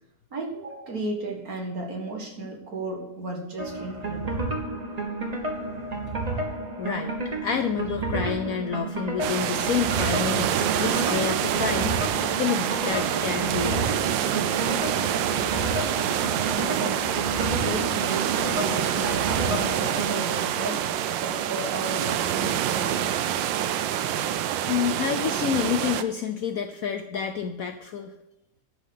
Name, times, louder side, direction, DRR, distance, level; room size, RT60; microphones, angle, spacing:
voice 1, 0.3-4.4 16.5-20.8 21.2-23.1, right 2 dB, 50° right, 1 dB, 2.2 m, -34 dB
sound 1, 3.6-20.2, right 2 dB, 25° right, 1.1 m, -31 dB
voice 2, 6.8-7.2 7.4-13.9 24.7-28.1, left 7 dB, 65° left, 6 dB, 0.9 m, -29 dB
sound 2, 9.2-26.0, right 10 dB, 85° right, 1.3 m, -26 dB
11.5 x 5.6 x 6.4 m, 0.84 s
omnidirectional pair, 2.0 m